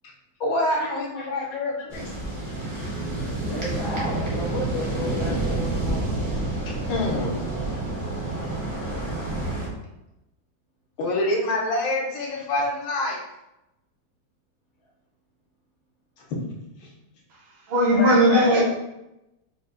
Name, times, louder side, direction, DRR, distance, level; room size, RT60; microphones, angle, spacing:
voice 1, 0.4-2.1 6.7-7.4 8.4-8.5 11.0-13.2 16.8-16.9 18.0-18.4, left 1 dB, 70° left, -1 dB, 1.5 m, -26 dB
sound 1, 1.9-9.7, right 2 dB, 20° right, 0.5 m, -29 dB
voice 2, 3.5-6.1, equal, 50° left, -5 dB, 0.9 m, -32 dB
voice 3, 17.7-18.6, equal, 80° right, -4 dB, 1.9 m, -18 dB
4.1 x 2.4 x 3.7 m, 0.90 s
omnidirectional pair, 2.2 m